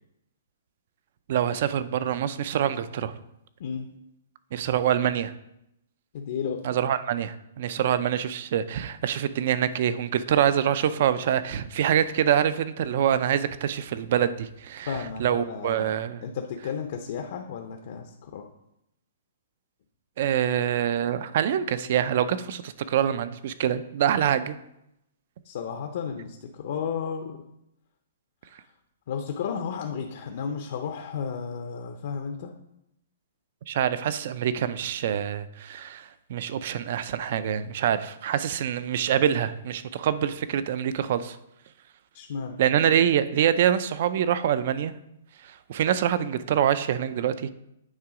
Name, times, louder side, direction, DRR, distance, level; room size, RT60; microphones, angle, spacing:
voice 1, 1.3-3.1 4.5-5.3 6.6-14.9 15.2-16.2 20.2-24.6 33.7-41.4 42.6-44.9 45.4-47.5, right 9 dB, 45° right, 14 dB, 0.4 m, -25 dB
voice 2, 6.1-6.6 7.8-7.9 14.9-15.9 16.2-18.5 25.4-27.4 29.1-32.5 42.1-42.6, left 6 dB, 50° left, 5 dB, 0.6 m, -33 dB
8.8 x 3.7 x 4.9 m, 0.83 s
hypercardioid pair, 170°, 0 cm